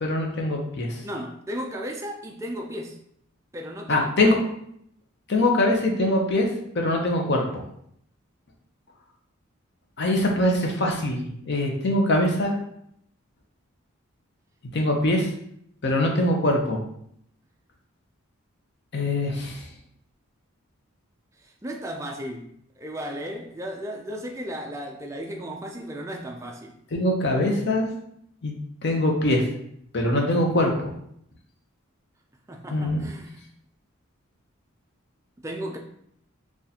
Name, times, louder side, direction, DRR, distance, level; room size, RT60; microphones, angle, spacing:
voice 1, 0.0-1.0 3.9-4.4 5.3-6.5 6.8-7.4 10.0-12.5 14.7-15.3 15.8-16.8 18.9-19.6 26.9-27.9 28.4-28.5 28.8-29.4 29.9-30.9 32.7-33.0, left 1 dB, 50° left, 1 dB, 0.6 m, -23 dB
voice 2, 1.0-3.0 3.5-4.3 21.4-22.5 22.8-26.7 32.5-33.4 35.4-35.8, equal, 15° right, 2 dB, 0.3 m, -35 dB
3.9 x 2.4 x 2.8 m, 0.71 s
head